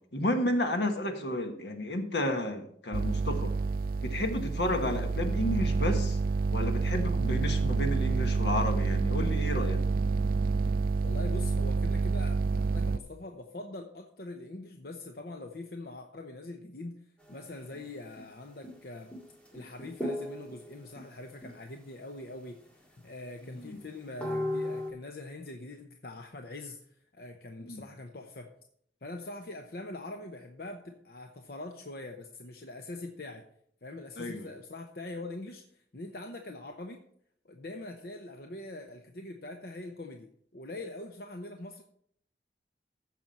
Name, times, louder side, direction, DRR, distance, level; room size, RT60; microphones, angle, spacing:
voice 1, 0.1-3.5 4.0-6.2 6.5-9.8 23.5-23.8 27.6-27.8 34.2-34.5, left 1 dB, 80° left, 5 dB, 1.5 m, -32 dB
sound 1, 2.9-13.0, right 4 dB, 55° right, 0.4 m, -28 dB
voice 2, 11.0-19.1 19.5-22.7 23.0-28.5 29.0-33.4 33.8-37.0 37.4-41.8, left 2 dB, 60° left, 4 dB, 0.8 m, -43 dB
sound 2, 17.2-17.8 18.2-18.3 18.6-18.9 19.1-21.0 21.4-21.9 22.3-22.4 22.8-22.9 23.5-24.9, left 1 dB, 5° left, 1.8 m, -37 dB
15.0 x 6.1 x 4.2 m, 0.66 s
head